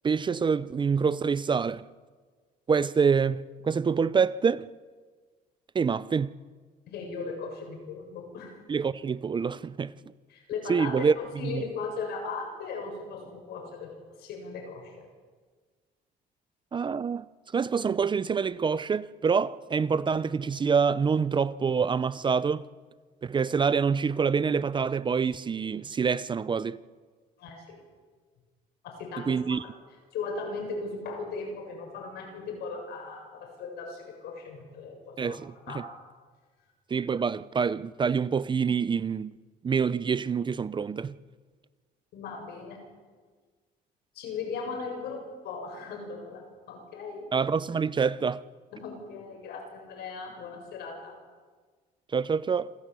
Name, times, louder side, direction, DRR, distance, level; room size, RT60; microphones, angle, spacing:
voice 1, 0.0-1.8 2.7-4.7 5.7-6.3 8.7-9.9 10.7-11.1 11.4-11.6 16.7-17.3 17.5-22.7 23.2-26.8 29.3-29.6 35.2-35.8 36.9-39.3 39.6-41.2 47.3-48.4 52.1-52.7, right 6 dB, 30° right, 0.6 m, -26 dB
voice 2, 6.9-8.6 10.3-13.9 14.2-15.1 27.4-27.8 28.8-29.6 30.1-35.4 35.7-35.9 42.1-42.8 44.1-47.3 48.7-51.2, left 4 dB, 75° left, 7.6 m, -37 dB
27.0 x 13.5 x 8.4 m
cardioid pair, 110°, 17 cm